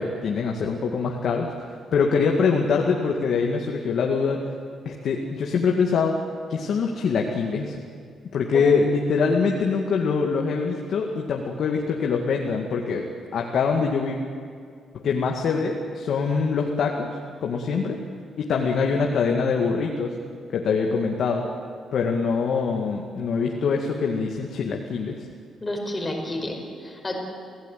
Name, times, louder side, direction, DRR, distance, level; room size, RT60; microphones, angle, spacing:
voice 1, 0.0-4.4 4.8-6.2 6.5-7.8 8.3-13.0 13.3-14.2 14.9-17.1 17.4-18.0 18.4-20.1 20.5-21.4 21.9-25.3, left 5 dB, 65° left, 1 dB, 2.1 m, -24 dB
voice 2, 25.6-27.1, left 1 dB, 15° left, 1 dB, 5.3 m, -30 dB
28.5 x 17.0 x 9.4 m, 2.2 s
cardioid pair, 130°, 0 cm